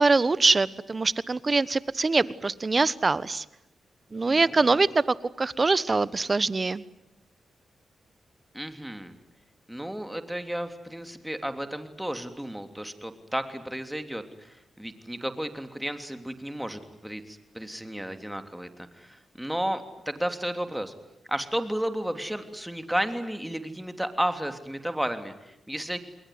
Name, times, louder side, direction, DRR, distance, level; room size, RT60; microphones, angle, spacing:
voice 1, 0.0-3.4 4.1-6.8, right 3 dB, 35° right, 18 dB, 1.2 m, -23 dB
voice 2, 4.3-4.8 8.5-9.1 9.7-20.9 21.3-26.0, equal, 5° right, 8 dB, 3.2 m, -33 dB
28.5 x 21.5 x 9.5 m, 0.85 s
supercardioid pair, 55°, 0 cm